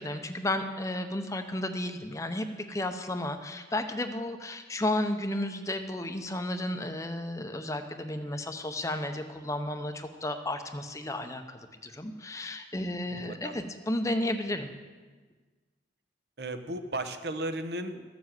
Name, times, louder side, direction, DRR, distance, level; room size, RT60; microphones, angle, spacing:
voice 1, 0.0-14.7, left 1 dB, 20° left, 7 dB, 0.7 m, -33 dB
voice 2, 13.1-13.6 16.4-18.0, right 1 dB, 65° right, 8 dB, 0.9 m, -35 dB
14.0 x 7.3 x 7.7 m, 1.4 s
head